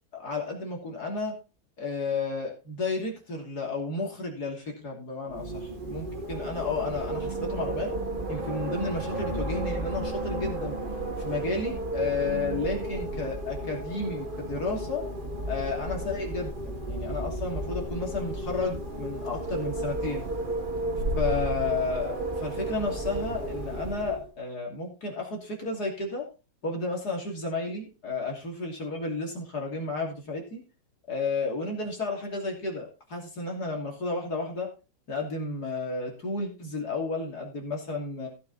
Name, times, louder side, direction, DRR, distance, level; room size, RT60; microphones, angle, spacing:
voice 1, 0.1-1.4 1.8-7.9 8.3-10.8 11.2-15.0 15.5-20.2 21.2-26.3 26.6-30.6 31.1-34.7 35.1-38.3, left 3 dB, 50° left, 0 dB, 3.3 m, -32 dB
Wind, 5.3-24.3, right 1 dB, 25° right, 1.8 m, -33 dB
15.5 x 6.9 x 4.2 m, 0.32 s
omnidirectional pair, 2.1 m